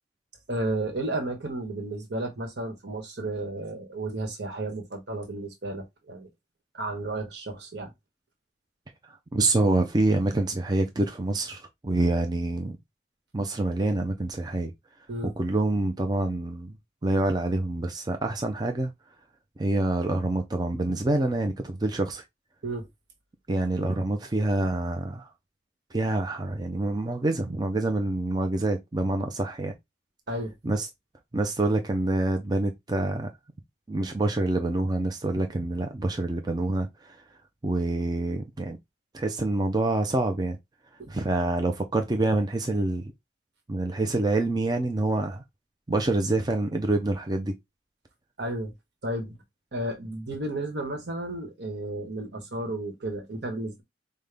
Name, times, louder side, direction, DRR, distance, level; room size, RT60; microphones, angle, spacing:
voice 1, 0.5-6.3 6.7-7.9 15.1-15.3 22.6-22.9 30.3-30.5 41.0-41.1 48.4-48.7 49.0-49.4 49.7-53.8, right 2 dB, 60° right, 1.2 m, -33 dB
voice 2, 9.3-12.8 13.3-14.7 15.4-16.8 17.0-18.9 19.6-22.2 23.5-25.3 25.9-29.7 30.6-30.9 31.3-33.3 33.9-37.2 37.6-38.8 39.1-40.6 41.1-43.0 43.7-45.4 45.9-47.5, right 2 dB, 20° right, 0.4 m, -26 dB
5.2 x 2.1 x 3.4 m
head